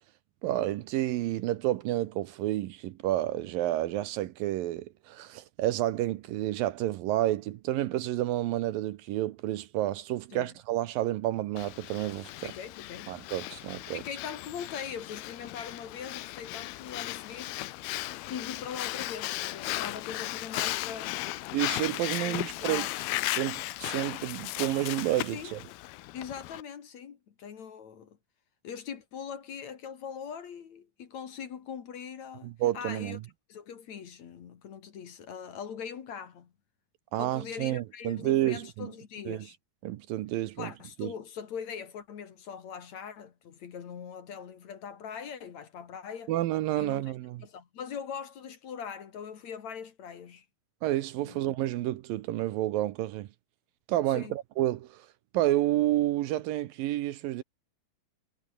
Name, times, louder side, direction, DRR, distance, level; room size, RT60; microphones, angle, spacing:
voice 1, 0.4-12.5 13.1-14.0 21.5-22.9 23.3-25.6 32.4-33.2 37.1-38.9 39.3-39.5 39.8-40.7 41.0-41.1 46.3-47.4 50.8-53.3 53.9-55.1 55.3-57.4, right 14 dB, 75° right, 2.5 m, -30 dB
Breathing, 11.6-26.6, left 18 dB, 85° left, 2.7 m, -36 dB
voice 2, 12.4-13.1 13.9-17.6 18.1-21.2 22.2-22.9 25.3-25.6 26.1-28.2 28.6-33.2 33.5-36.5 37.2-39.6 40.6-46.3 46.8-47.0 47.4-50.5 51.2-51.4 54.1-54.3, left 7 dB, 55° left, 2.9 m, -41 dB
omnidirectional pair, 4.4 m